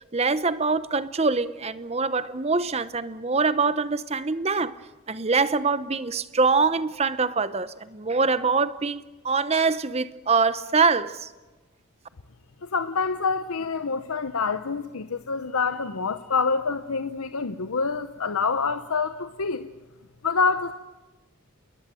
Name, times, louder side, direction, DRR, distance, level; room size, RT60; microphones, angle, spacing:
voice 1, 0.1-4.8 5.1-11.3, right 4 dB, 30° right, 0.8 m, -24 dB
voice 2, 12.6-19.7 20.2-20.7, left 4 dB, 85° left, 0.8 m, -26 dB
28.5 x 21.5 x 7.7 m
head